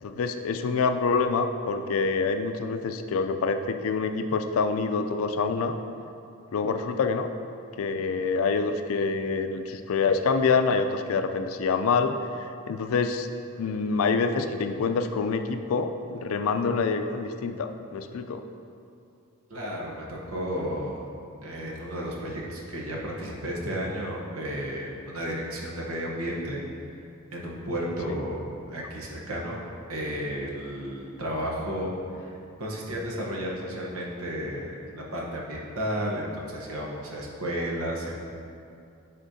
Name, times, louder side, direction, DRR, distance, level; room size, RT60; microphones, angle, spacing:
voice 1, 0.0-5.7 6.5-7.3 7.8-13.3 13.6-18.4 28.1-28.2, left 4 dB, 80° left, 8 dB, 0.4 m, -26 dB
voice 2, 19.5-21.1 21.4-26.6 27.3-28.4 28.7-29.6 29.9-31.9 32.2-32.3 32.6-38.3, equal, 80° right, -3 dB, 1.0 m, -33 dB
9.8 x 4.3 x 2.7 m, 2.6 s
head